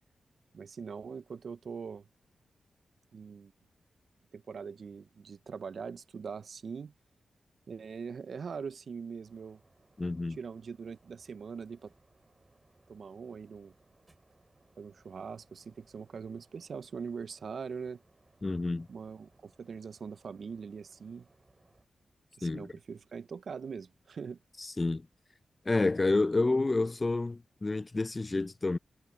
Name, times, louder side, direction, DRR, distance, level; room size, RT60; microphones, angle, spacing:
voice 1, 0.5-2.1 3.1-3.5 4.3-6.9 7.7-9.6 10.4-11.9 12.9-13.7 14.8-18.0 18.9-21.3 22.4-24.4, right 6 dB, 70° right, 0.6 m, -42 dB
sound 1, 9.2-21.9, right 2 dB, 30° right, 4.0 m, -66 dB
voice 2, 10.0-10.4 18.4-18.9 22.4-22.7 24.8-25.1 25.7-28.8, left 2 dB, 35° left, 0.5 m, -29 dB
cardioid pair, 50°, 0 cm